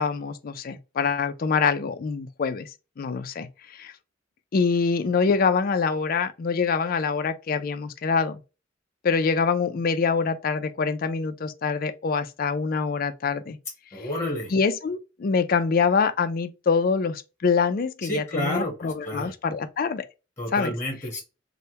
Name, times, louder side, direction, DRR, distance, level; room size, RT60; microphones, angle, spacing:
voice 1, 0.0-3.9 4.5-8.4 9.0-13.6 13.9-14.1 14.5-20.1 20.5-20.8, left 5 dB, 45° left, 0.4 m, -25 dB
voice 2, 13.9-14.5 18.0-19.3 20.4-21.2, left 1 dB, 15° left, 1.1 m, -30 dB
3.2 x 2.1 x 2.8 m
head